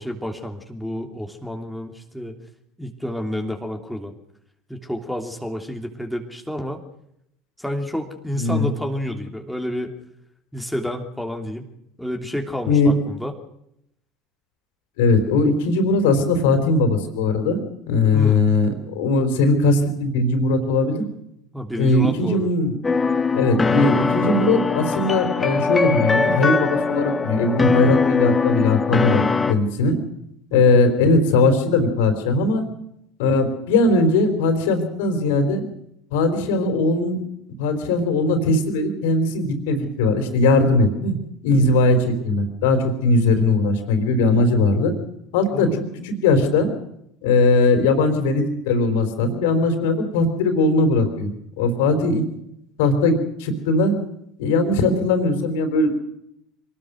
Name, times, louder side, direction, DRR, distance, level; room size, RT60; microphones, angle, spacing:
voice 1, 0.0-2.4 2.8-4.1 4.7-6.8 7.6-9.9 10.5-11.7 12.0-13.3 18.1-18.5 21.5-22.5 30.5-30.8 45.5-45.7, left 1 dB, ahead, 2 dB, 3.0 m, -30 dB
voice 2, 8.3-8.7 12.7-12.9 15.0-17.6 17.9-21.0 21.8-22.7 23.3-30.0 30.5-32.6 33.2-35.6 36.1-37.2 37.6-41.2 41.4-44.9 45.3-46.7 47.2-51.3 51.6-52.2 52.8-53.9 54.4-55.9, left 2 dB, 65° left, 7 dB, 4.1 m, -19 dB
sound 1, 22.8-29.5, left 4 dB, 20° left, 1.9 m, -21 dB
25.0 x 18.5 x 6.4 m, 0.77 s
figure-of-eight pair, 65°, 0 cm